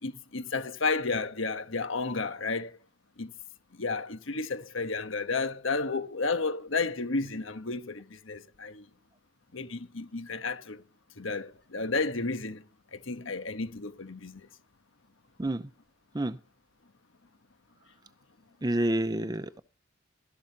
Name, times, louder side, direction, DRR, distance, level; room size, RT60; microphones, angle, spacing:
voice 1, 0.0-2.7 3.2-3.3 3.7-8.9 9.5-10.8 11.2-12.6 12.9-14.5, left 3 dB, 75° left, 1.3 m, -32 dB
voice 2, 15.4-15.7 16.1-16.4 18.6-19.6, right 1 dB, 20° right, 0.7 m, -29 dB
13.0 x 12.0 x 4.1 m
head